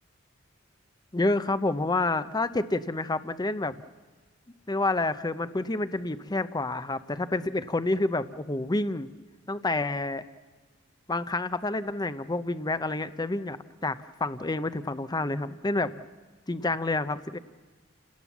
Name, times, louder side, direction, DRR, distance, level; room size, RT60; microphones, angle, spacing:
voice 1, 1.1-3.8 4.7-9.1 9.5-10.2 11.1-15.9 16.5-17.4, left 2 dB, 20° left, 13 dB, 0.7 m, -28 dB
29.5 x 18.0 x 7.3 m, 1.4 s
head